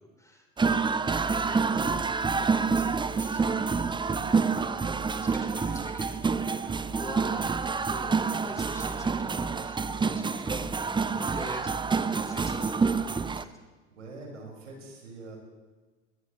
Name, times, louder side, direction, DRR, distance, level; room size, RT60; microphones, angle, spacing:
voice 1, 0.0-4.3 4.6-4.8 5.1-13.6, left 1 dB, 10° left, 2 dB, 3.9 m, -46 dB
sound 1, 0.6-13.4, right 5 dB, 15° right, 0.6 m, -27 dB
voice 2, 13.9-15.4, right 3 dB, 85° right, -1 dB, 5.6 m, -45 dB
21.0 x 20.0 x 3.2 m, 1.3 s
hypercardioid pair, 75°, 36 cm